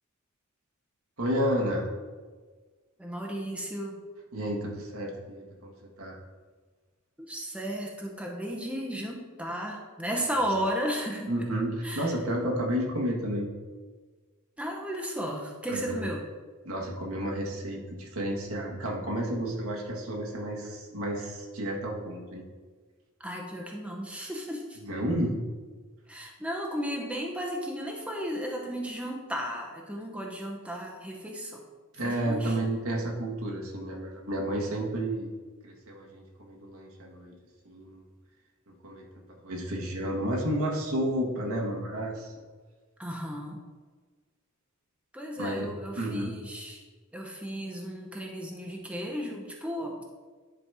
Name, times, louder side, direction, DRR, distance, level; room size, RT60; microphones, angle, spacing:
voice 1, 1.2-1.9 4.3-5.7 6.0-6.1 11.3-13.5 15.7-16.1 16.6-22.4 24.8-25.3 32.0-35.3 35.6-37.3 37.6-38.0 38.7-39.0 39.4-42.3 45.4-45.7 45.9-46.3, right 1 dB, 70° right, -1 dB, 1.5 m, -31 dB
voice 2, 3.0-4.0 7.2-11.5 11.8-12.2 14.6-16.2 23.2-24.8 26.1-31.6 32.0-32.6 43.0-43.6 45.1-46.8 47.1-50.0, equal, 5° right, 0 dB, 0.8 m, -34 dB
10.0 x 4.1 x 4.8 m, 1.4 s
head